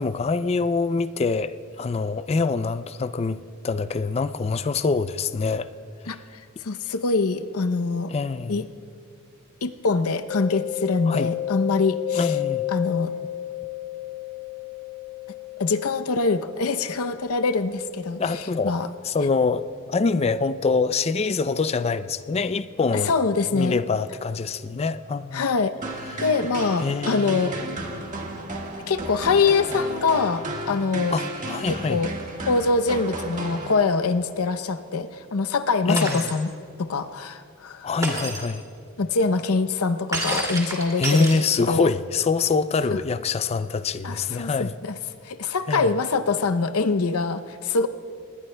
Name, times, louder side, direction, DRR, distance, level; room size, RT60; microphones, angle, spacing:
voice 1, 0.0-5.7 6.1-6.2 8.1-8.7 11.1-11.3 12.1-12.7 18.2-23.1 23.5-25.4 26.1-26.2 26.8-27.5 31.1-32.0 35.9-36.3 37.8-38.6 41.0-44.7 45.7-45.9, left 4 dB, 30° left, 0.4 m, -25 dB
voice 2, 6.6-8.1 8.5-8.6 9.6-12.3 12.7-13.1 15.6-18.9 22.9-23.8 25.3-25.7 26.2-27.5 28.9-31.2 31.9-32.1 32.5-36.5 36.8-37.9 39.0-41.3 41.6-41.9 42.9-43.0 44.0-44.9 45.2-47.9, left 4 dB, 85° left, 0.7 m, -24 dB
Mallet percussion, 10.3-19.9, left 13 dB, 70° left, 2.3 m, -33 dB
sound 1, 25.8-34.2, right 1 dB, 35° right, 1.6 m, -33 dB
Shatter, 36.0-36.4 38.0-38.5 40.1-41.8, right 2 dB, 15° right, 2.4 m, -29 dB
25.5 x 20.0 x 2.2 m
head